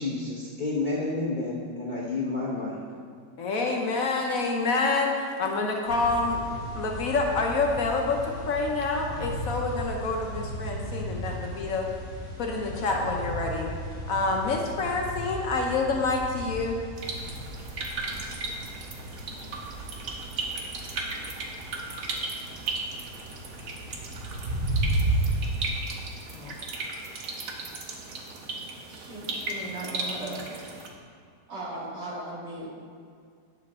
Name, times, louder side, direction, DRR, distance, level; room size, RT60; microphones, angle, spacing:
voice 1, 0.0-2.8, left 3 dB, 40° left, -6 dB, 0.7 m, -30 dB
voice 2, 3.4-6.4 6.7-11.9 12.4-13.7 14.1-16.8 26.3-26.5, left 3 dB, 60° left, 1 dB, 1.1 m, -27 dB
sound 1, 5.9-25.3, right 1 dB, 40° right, 2.2 m, -35 dB
sound 2, 17.0-30.9, right 3 dB, 60° right, 1.2 m, -36 dB
voice 3, 28.9-30.6 31.5-32.7, right 2 dB, 80° right, -6 dB, 2.6 m, -37 dB
9.5 x 6.9 x 3.6 m, 2.1 s
omnidirectional pair, 1.9 m